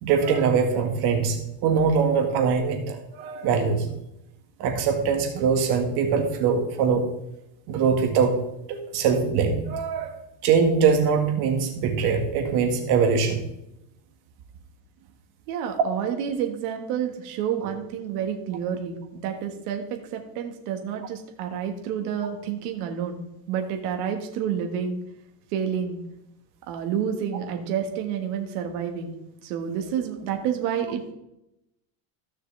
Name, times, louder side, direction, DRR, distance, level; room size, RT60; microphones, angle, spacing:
voice 1, 0.0-3.9 4.6-7.1 7.7-8.4 8.7-10.1 10.4-13.4 15.7-15.8 17.6-17.7, right 6 dB, 55° right, 4 dB, 2.0 m, -22 dB
voice 2, 15.5-23.2 23.5-25.0 25.5-26.0 26.7-29.1 29.4-31.1, right 8 dB, 70° right, 4 dB, 1.8 m, -29 dB
15.0 x 6.4 x 3.4 m, 0.85 s
supercardioid pair, 140°, 48 cm